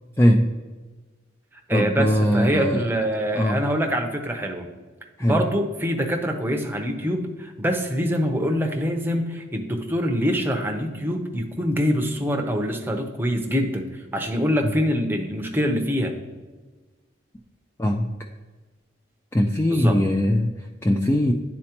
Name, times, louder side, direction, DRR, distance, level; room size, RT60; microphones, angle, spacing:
voice 1, 0.2-0.5 1.7-2.9 3.3-3.6 5.2-5.4 14.6-14.7 17.8-18.1 19.3-21.3, equal, 15° left, 2 dB, 0.3 m, -20 dB
voice 2, 1.7-4.7 5.2-13.8 14.1-16.1 19.7-20.0, equal, 10° right, 3 dB, 0.7 m, -24 dB
10.5 x 4.2 x 2.9 m, 1.3 s
head